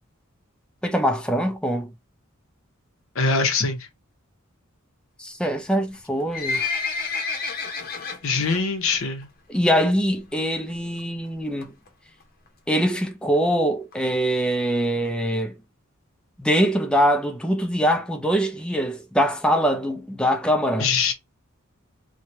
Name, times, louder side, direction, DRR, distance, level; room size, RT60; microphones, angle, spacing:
voice 1, 0.8-1.9 5.2-6.6 9.5-11.7 12.7-15.5 16.4-20.9, equal, 5° left, 0.5 m, -23 dB
voice 2, 3.2-3.9 8.2-9.3 20.8-21.1, left 4 dB, 75° left, 0.8 m, -23 dB
Livestock farm animals working animals, 5.9-8.6 9.0-9.2 9.5-9.6 10.3-10.4 10.7-10.8 11.0-11.1 11.6-11.9 12.5-12.6 12.8-12.9 13.0-13.1 13.4-13.5 13.9-14.0 14.5-14.6 15.0-15.1, left 4 dB, 45° left, 0.8 m, -29 dB
3.2 x 2.3 x 2.7 m
head